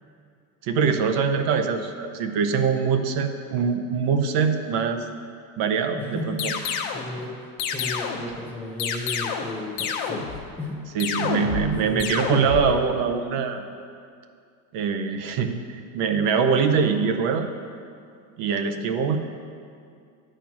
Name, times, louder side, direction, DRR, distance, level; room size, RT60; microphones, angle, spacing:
voice 1, 0.6-5.1 5.6-6.5 10.9-13.7 14.7-17.5 18.4-19.2, right 6 dB, 50° right, 6 dB, 0.7 m, -23 dB
voice 2, 5.9-6.5 6.9-10.8 11.8-12.3, left 2 dB, 5° left, -4 dB, 0.4 m, -34 dB
sound 1, 6.4-7.1 7.6-8.3 8.8-9.5 9.8-10.4 11.0-11.7 12.0-12.7, left 7 dB, 60° left, 1.0 m, -28 dB
10.5 x 4.5 x 5.9 m, 2.3 s
supercardioid pair, 150°, 46 cm